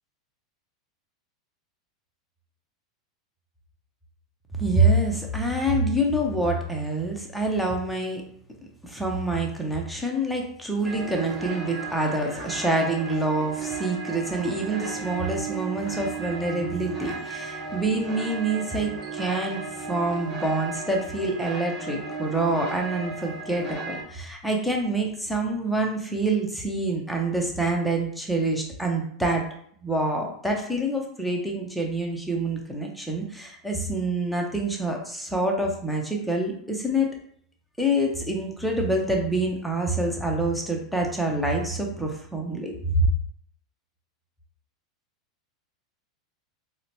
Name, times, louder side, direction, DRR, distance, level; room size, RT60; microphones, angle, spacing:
voice 1, 4.6-8.2 8.8-29.4 29.8-37.1 37.8-43.1, right 2 dB, ahead, 0 dB, 0.6 m, -26 dB
sound 1, 10.8-24.0, right 4 dB, 25° right, 1.1 m, -35 dB
3.9 x 2.1 x 2.7 m, 0.63 s
figure-of-eight pair, 90°, 3 cm